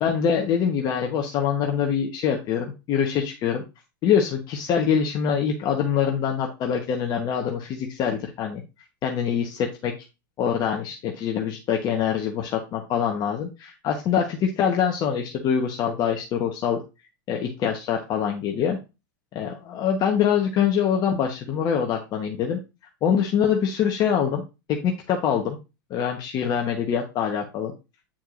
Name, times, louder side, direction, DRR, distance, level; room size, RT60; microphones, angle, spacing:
voice 1, 0.0-3.6 4.0-8.6 9.0-9.9 10.4-16.8 17.3-18.8 19.3-22.6 23.0-24.4 24.8-25.6 25.9-27.7, left 8 dB, 35° left, 2 dB, 1.1 m, -24 dB
8.7 x 4.6 x 2.5 m, 0.27 s
hypercardioid pair, 120°, 12 cm